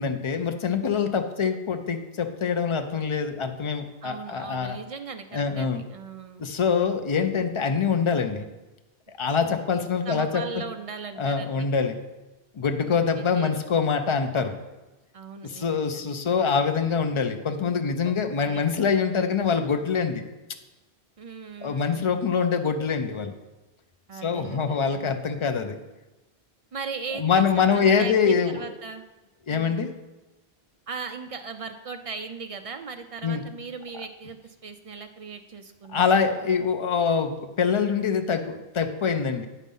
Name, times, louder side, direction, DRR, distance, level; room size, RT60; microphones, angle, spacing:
voice 1, 0.0-4.8 5.3-5.8 6.4-8.5 9.2-10.4 11.2-12.0 12.6-14.5 15.4-20.2 21.6-23.3 24.2-25.8 27.1-28.6 29.5-29.9 33.2-33.4 35.9-39.5, left 6 dB, 45° left, 7 dB, 0.4 m, -24 dB
voice 2, 4.0-6.5 10.1-11.7 12.8-13.6 15.1-16.1 18.0-18.2 18.4-18.7 21.2-22.2 24.1-25.2 26.7-29.0 29.5-29.9 30.9-36.2, right 5 dB, 60° right, 7 dB, 0.3 m, -38 dB
9.2 x 4.2 x 5.4 m, 1.1 s
omnidirectional pair, 1.1 m